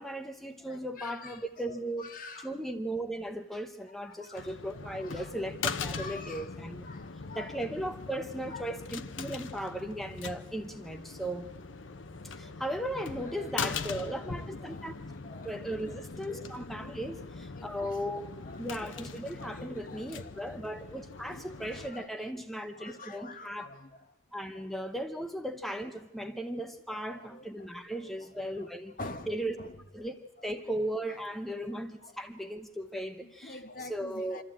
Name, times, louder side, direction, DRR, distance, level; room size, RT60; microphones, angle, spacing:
voice 1, 0.0-2.1 2.4-6.8 7.3-11.5 12.4-14.9 15.4-18.3 18.6-23.7 24.3-29.0 29.3-29.6 29.9-30.1 30.4-34.4, right 1 dB, ahead, 0.8 m, -37 dB
voice 2, 0.7-2.5 4.0-4.5 4.8-5.3 5.9-6.5 6.8-7.6 8.5-8.6 13.2-16.5 17.5-18.0 18.4-18.7 19.4-20.7 21.2-21.4 21.9-22.2 22.7-23.9 26.9-27.4 28.0-28.7 29.0-29.3 29.6-29.7 31.1-31.2 31.6-32.1 33.2-34.4, left 3 dB, 45° left, 1.2 m, -46 dB
sound 1, 4.4-21.9, left 5 dB, 75° left, 0.8 m, -41 dB
25.0 x 14.0 x 8.9 m
head